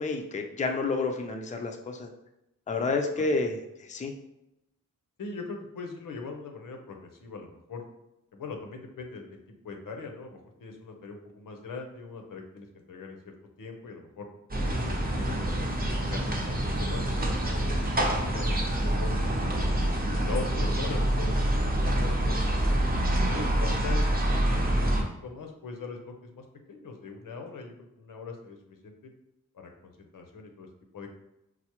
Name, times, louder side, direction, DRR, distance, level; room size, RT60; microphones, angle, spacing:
voice 1, 0.0-2.1 2.7-3.6 3.9-4.1, left 3 dB, 25° left, 4 dB, 0.4 m, -29 dB
voice 2, 2.7-3.3 5.2-7.8 8.3-9.4 9.6-14.3 14.7-16.4 16.6-19.7 20.2-22.8 23.3-24.9 25.2-28.9 29.5-30.7 30.9-31.1, left 4 dB, 80° left, 3 dB, 0.6 m, -41 dB
sound 1, 14.5-25.0, right 1 dB, 30° right, 0.7 m, -26 dB
4.6 x 2.0 x 2.9 m, 0.87 s
wide cardioid pair, 70°, 32 cm